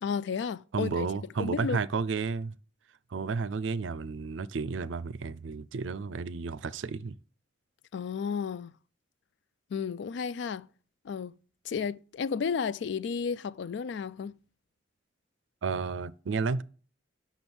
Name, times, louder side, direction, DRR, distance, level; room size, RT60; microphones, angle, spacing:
voice 1, 0.0-1.1 1.4-1.8 7.9-8.7 9.7-10.7 11.0-11.3 11.7-14.4, left 6 dB, 70° left, 0.3 m, -32 dB
voice 2, 0.7-2.5 3.1-7.2 15.6-16.6, right 5 dB, 90° right, 0.5 m, -32 dB
6.2 x 5.9 x 7.0 m
head